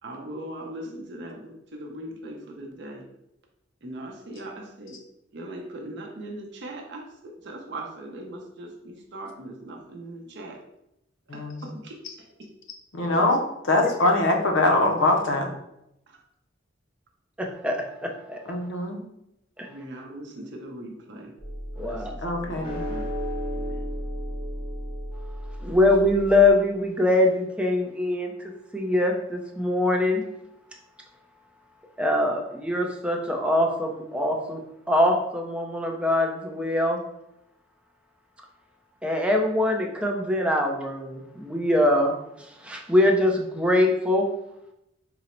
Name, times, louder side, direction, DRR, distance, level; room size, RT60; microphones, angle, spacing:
voice 1, 0.0-3.1 3.8-5.0 5.3-10.6 11.3-12.5 16.1-16.2 19.7-21.3 21.8-23.1 23.5-23.9, right 1 dB, 65° right, 2 dB, 0.7 m, -40 dB
voice 2, 11.3-11.7 12.9-13.4 13.6-15.5 18.5-19.0 22.2-22.8, left 2 dB, 80° left, 3 dB, 0.6 m, -23 dB
voice 3, 17.4-18.4 19.6-19.7 21.8-22.1 25.2-30.2 32.0-34.6 34.9-37.0 39.0-44.3, left 1 dB, 5° right, 1 dB, 0.5 m, -23 dB
sound 1, 21.4-26.5, equal, 25° left, 1.0 m, -33 dB
3.8 x 2.0 x 4.3 m, 0.83 s
head